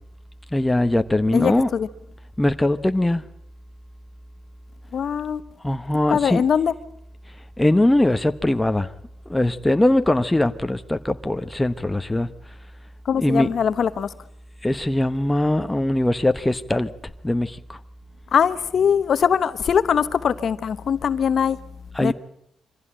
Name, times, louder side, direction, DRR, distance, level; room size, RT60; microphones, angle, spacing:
voice 1, 0.5-1.7 2.4-3.2 5.6-6.4 7.6-8.9 9.3-12.3 13.2-13.5 14.6-16.9 17.2-17.8 21.9-22.1, left 1 dB, 10° left, 1.0 m, -21 dB
voice 2, 1.3-1.9 4.9-5.4 6.1-6.7 13.0-14.1 18.3-21.6 22.0-22.1, left 7 dB, 55° left, 1.1 m, -21 dB
24.5 x 15.5 x 8.9 m
cardioid pair, 90°, 0 cm